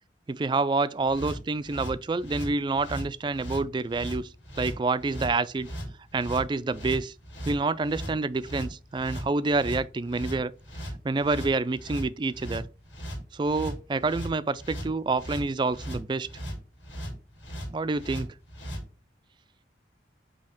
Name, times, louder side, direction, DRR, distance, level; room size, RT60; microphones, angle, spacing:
voice 1, 0.3-4.3 4.6-5.7 6.1-7.1 7.5-10.5 11.0-12.6 13.3-16.3 17.7-18.3, right 3 dB, 25° right, 0.3 m, -27 dB
sound 1, 1.0-18.8, equal, 80° left, 2.6 m, -38 dB
8.5 x 2.8 x 5.8 m
head